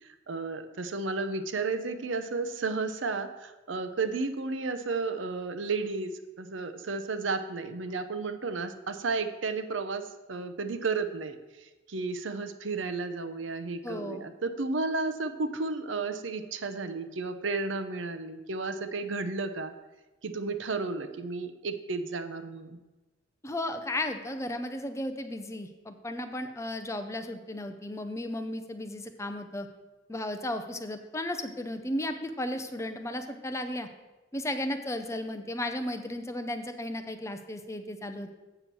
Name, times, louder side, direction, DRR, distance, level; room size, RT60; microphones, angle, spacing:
voice 1, 0.3-11.4 11.9-19.7 20.2-22.8, right 3 dB, 80° right, 10 dB, 0.7 m, -33 dB
voice 2, 13.8-14.2 23.4-29.7 30.1-33.9 34.3-38.3, left 1 dB, 15° left, 7 dB, 0.6 m, -34 dB
7.8 x 6.8 x 6.1 m, 1.1 s
head